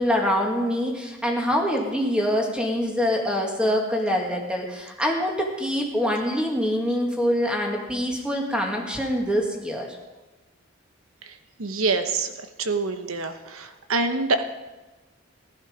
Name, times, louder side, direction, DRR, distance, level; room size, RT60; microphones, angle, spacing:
voice 1, 0.0-9.9, equal, 5° right, 0 dB, 1.9 m, -25 dB
voice 2, 11.6-12.3 12.7-13.3 13.9-14.4, right 3 dB, 85° right, 8 dB, 1.1 m, -24 dB
15.5 x 11.5 x 5.1 m, 1.2 s
head